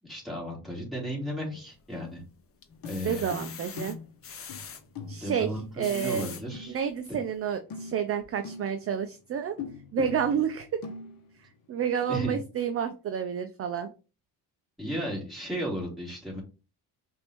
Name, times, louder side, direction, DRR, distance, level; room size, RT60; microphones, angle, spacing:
voice 1, 0.0-2.2 2.8-3.2 5.2-6.8 12.1-12.4 14.8-16.4, equal, ahead, -4 dB, 2.4 m, -34 dB
sound 1, 1.5-2.1 2.6-4.8 5.6-6.4 7.0-7.1 7.5-7.6, left 7 dB, 35° left, 0.6 m, -43 dB
sound 2, 2.7-7.4 7.6-9.0 9.6-11.7 12.0-12.1, left 5 dB, 55° left, 1.0 m, -42 dB
voice 2, 3.0-4.0 5.1-5.5 5.8-6.3 6.7-9.6 9.9-10.8 11.4-13.9, right 8 dB, 35° right, 8 dB, 0.4 m, -30 dB
5.2 x 2.7 x 2.9 m, 0.32 s
cardioid pair, 115°, 42 cm